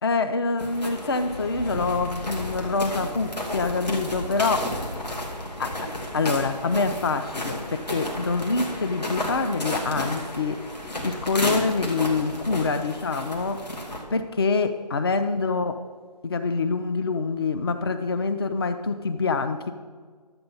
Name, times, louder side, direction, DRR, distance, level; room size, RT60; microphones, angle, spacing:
voice 1, 0.0-4.7 5.3-10.6 11.0-13.7 14.1-15.8 16.2-19.7, left 4 dB, 35° left, 9 dB, 0.5 m, -26 dB
sound 1, 0.6-14.0, left 1 dB, 80° left, 2.6 m, -32 dB
12.0 x 7.9 x 5.4 m, 1.5 s
figure-of-eight pair, 155°, 21 cm